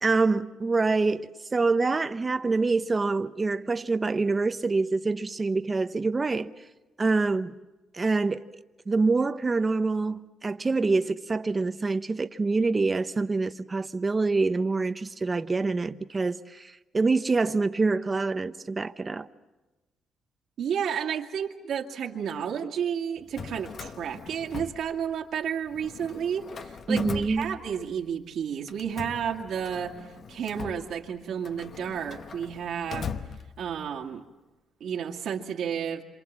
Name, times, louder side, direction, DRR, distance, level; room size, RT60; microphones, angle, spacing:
voice 1, 0.0-6.5 7.0-7.5 7.9-8.4 8.9-19.3 26.9-27.5, right 3 dB, 25° right, 0.9 m, -26 dB
voice 2, 20.6-29.9 30.3-33.1 33.6-34.2 34.8-36.0, right 8 dB, 70° right, 2.2 m, -31 dB
Drawer open or close, 23.2-25.4 25.7-28.1 28.7-33.9, left 6 dB, 50° left, 1.1 m, -40 dB
27.0 x 27.0 x 7.4 m
cardioid pair, 90°, 0 cm